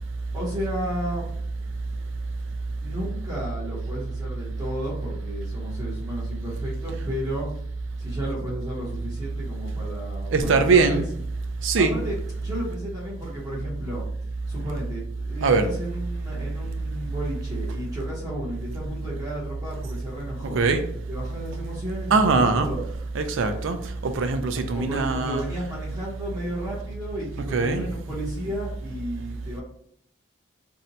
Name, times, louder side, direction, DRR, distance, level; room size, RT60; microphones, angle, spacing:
voice 1, 0.3-1.3 2.8-7.5 8.0-11.0 11.7-12.2 12.4-14.1 14.5-20.6 21.1-22.9 24.7-29.6, equal, 20° right, -7 dB, 0.8 m, -33 dB
voice 2, 10.3-11.0 11.6-11.9 15.4-15.7 20.5-20.8 22.1-22.7 23.1-23.8 24.0-25.4 27.5-27.8, right 4 dB, 65° right, 8 dB, 0.4 m, -21 dB
2.6 x 2.2 x 3.9 m, 0.67 s
head